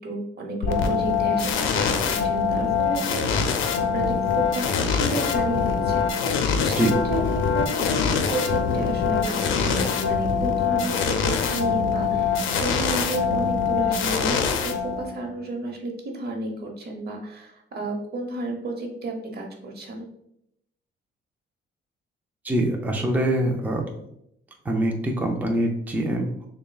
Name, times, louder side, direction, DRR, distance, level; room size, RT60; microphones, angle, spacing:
voice 1, 0.0-6.8 7.1-20.1, right 2 dB, 55° right, 2 dB, 0.9 m, -32 dB
sound 1, 0.6-15.3, left 6 dB, 85° left, 0.5 m, -24 dB
voice 2, 22.4-23.8 24.6-26.5, right 1 dB, 10° right, 1 dB, 0.5 m, -24 dB
6.5 x 2.2 x 2.3 m, 0.76 s
cardioid pair, 90°, 20 cm